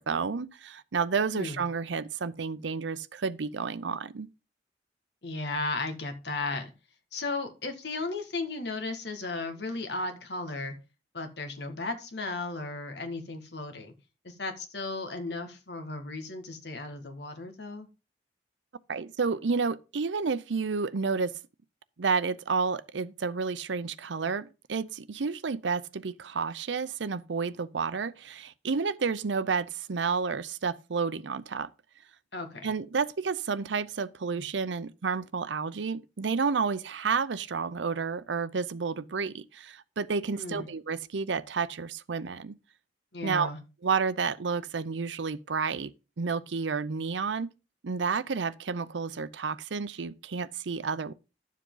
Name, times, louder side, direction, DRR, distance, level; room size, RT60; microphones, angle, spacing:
voice 1, 0.0-4.3 18.9-21.4 22.0-31.7 32.6-42.6 43.2-43.5 43.8-45.9 46.2-47.5 47.8-51.1, right 5 dB, 80° right, 0.6 m, -30 dB
voice 2, 5.2-6.7 7.1-10.7 11.1-13.9 14.2-17.9 32.3-32.7 40.3-40.7 43.1-43.6, left 3 dB, 65° left, 1.7 m, -35 dB
11.5 x 7.4 x 3.9 m
head